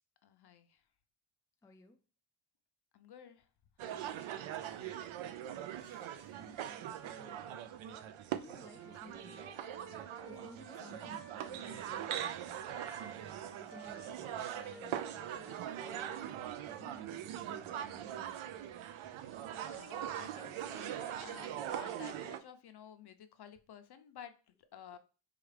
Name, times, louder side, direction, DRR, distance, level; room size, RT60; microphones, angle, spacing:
voice 1, 0.2-0.8 2.9-3.5 3.8-4.1 4.6-5.2 5.8-6.4 10.6-11.0 19.2-25.0, left 9 dB, 55° left, 9 dB, 0.6 m, -54 dB
voice 2, 1.6-2.0 5.2-5.7 6.4-7.7 8.3-9.5 10.2-16.2 16.6-18.7 19.0-19.1, left 2 dB, 5° left, 4 dB, 0.3 m, -58 dB
sound 1, 3.8-22.4, right 10 dB, 75° right, 0.6 m, -42 dB
Wind instrument woodwind instrument, 8.6-12.4 12.7-16.8, right 3 dB, 30° right, 0.9 m, -53 dB
4.8 x 2.4 x 3.3 m, 0.34 s
cardioid pair, 110°, 48 cm